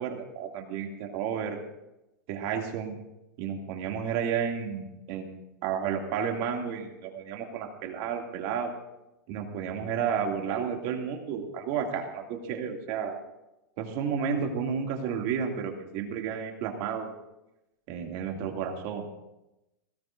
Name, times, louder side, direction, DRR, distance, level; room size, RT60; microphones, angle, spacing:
voice 1, 0.0-1.6 2.3-2.9 3.4-5.4 5.6-8.7 9.3-13.2 13.8-17.1 17.9-19.1, right 7 dB, 50° right, 2 dB, 2.5 m, -32 dB
21.0 x 17.5 x 2.6 m, 0.94 s
hypercardioid pair, 135°, 10 cm